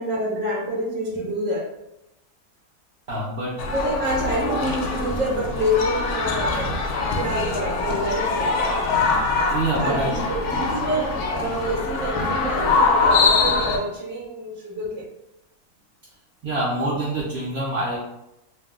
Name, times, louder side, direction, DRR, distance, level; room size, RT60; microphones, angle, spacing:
voice 1, 0.0-1.7 3.7-6.7 7.1-9.1 9.8-15.1, equal, 15° right, -5 dB, 0.4 m, -27 dB
voice 2, 3.1-3.7 6.4-6.7 9.5-10.1 16.4-18.0, right 2 dB, 60° right, -5 dB, 0.6 m, -26 dB
sound 1, 3.6-13.8, left 4 dB, 70° left, 0.7 m, -23 dB
2.6 x 2.1 x 3.5 m, 0.88 s
omnidirectional pair, 1.6 m